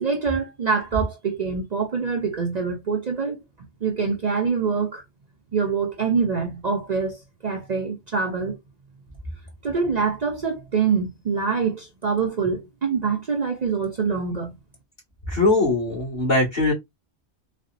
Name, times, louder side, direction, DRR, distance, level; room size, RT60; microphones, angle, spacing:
voice 1, 0.0-5.0 5.5-8.6 9.6-14.5, right 5 dB, 45° right, 0.6 m, -25 dB
voice 2, 15.3-16.7, left 2 dB, 45° left, 1.9 m, -21 dB
4.1 x 2.2 x 2.4 m
omnidirectional pair, 1.1 m